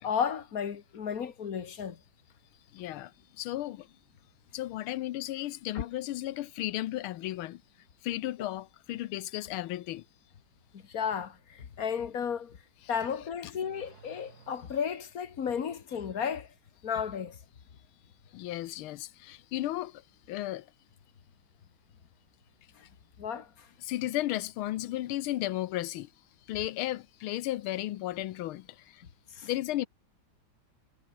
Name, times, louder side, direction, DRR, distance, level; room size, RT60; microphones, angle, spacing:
voice 1, 0.0-2.0 5.7-5.8 8.4-8.6 10.7-12.6 12.9-16.5 16.8-17.4 22.8-22.9 23.2-23.7 29.3-29.5, left 7 dB, 45° left, 1.8 m, -33 dB
voice 2, 2.7-3.9 4.5-7.6 8.0-10.0 18.3-20.0 20.3-20.7 23.8-26.1 26.5-29.0 29.4-29.9, left 15 dB, 80° left, 1.6 m, -34 dB
Car / Accelerating revving vroom, 13.0-15.2, right 5 dB, 45° right, 2.7 m, -58 dB
omnidirectional pair, 2.3 m